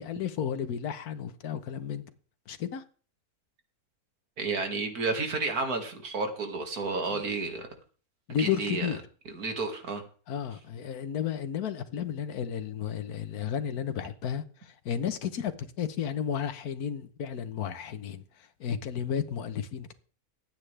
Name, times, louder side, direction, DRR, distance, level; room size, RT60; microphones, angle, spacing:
voice 1, 0.0-2.1 2.5-2.8 7.1-7.2 8.3-9.0 10.3-19.9, left 8 dB, 85° left, 1.5 m, -33 dB
voice 2, 4.4-7.7 8.4-8.9 9.3-10.0, right 3 dB, 85° right, 2.5 m, -31 dB
22.0 x 9.0 x 3.4 m
omnidirectional pair, 1.6 m